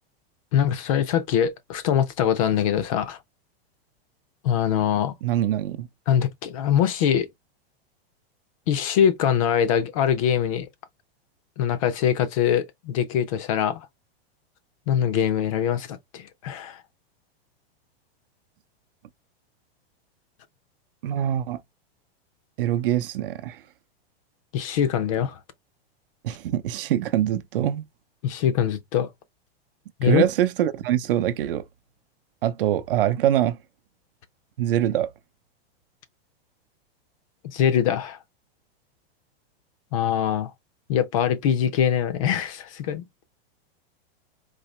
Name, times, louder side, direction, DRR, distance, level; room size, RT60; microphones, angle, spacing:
voice 1, 0.5-3.2 4.4-5.1 6.1-7.3 8.7-10.7 11.6-13.9 14.9-16.8 24.5-25.4 28.2-29.1 30.0-30.2 37.4-38.2 39.9-40.5 40.9-43.0, left 9 dB, 35° left, 0.5 m, -23 dB
voice 2, 5.2-5.9 21.0-21.6 22.6-23.6 26.2-27.9 30.0-31.6 32.4-33.6 34.6-35.1, right 11 dB, 60° right, 0.6 m, -24 dB
4.0 x 2.8 x 3.0 m
supercardioid pair, 170°, 31 cm